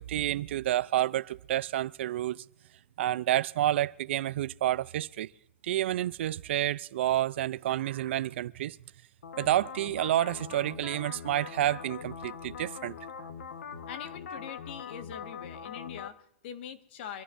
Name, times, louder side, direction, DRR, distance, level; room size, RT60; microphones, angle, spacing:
voice 1, 0.0-2.4 3.0-5.3 5.6-8.8 9.4-13.3, right 13 dB, 65° right, 0.5 m, -29 dB
sound 1, 9.2-16.1, left 6 dB, 85° left, 1.2 m, -42 dB
voice 2, 13.9-17.2, left 8 dB, 55° left, 1.6 m, -43 dB
25.5 x 15.5 x 2.6 m
hypercardioid pair, 150°, 7 cm